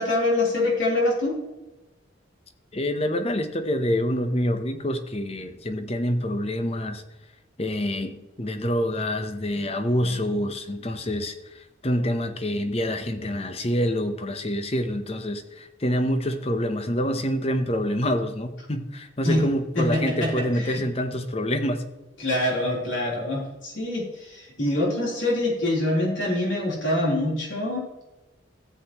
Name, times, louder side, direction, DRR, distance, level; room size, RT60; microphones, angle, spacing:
voice 1, 0.0-1.4 19.2-19.4 19.8-20.8 22.2-27.9, left 1 dB, 70° left, -3 dB, 3.5 m, -25 dB
voice 2, 2.7-7.0 7.6-21.8, equal, 30° left, 8 dB, 0.8 m, -26 dB
13.5 x 8.0 x 3.0 m, 1.1 s
head